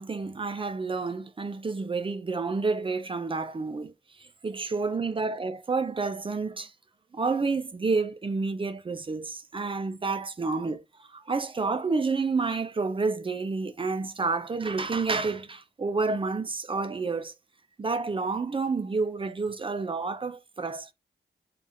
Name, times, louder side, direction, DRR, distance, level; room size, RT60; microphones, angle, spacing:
voice 1, 0.0-6.7 7.1-17.3 17.8-20.9, right 4 dB, 30° right, 0.4 m, -29 dB
4.1 x 2.4 x 3.4 m
wide cardioid pair, 175°, 18 cm